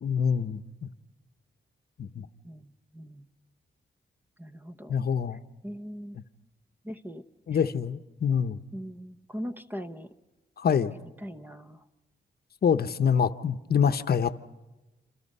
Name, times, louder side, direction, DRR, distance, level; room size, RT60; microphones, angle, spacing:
voice 1, 0.0-0.9 2.0-2.3 4.9-5.4 7.5-8.6 10.6-11.0 12.6-14.4, left 7 dB, 60° left, 10 dB, 0.8 m, -26 dB
voice 2, 2.1-3.3 4.4-4.9 5.6-6.2 6.8-7.2 8.7-10.1 11.2-11.8, equal, 10° right, 10 dB, 0.9 m, -40 dB
27.5 x 27.5 x 5.5 m, 1.1 s
wide cardioid pair, 155°, 18 cm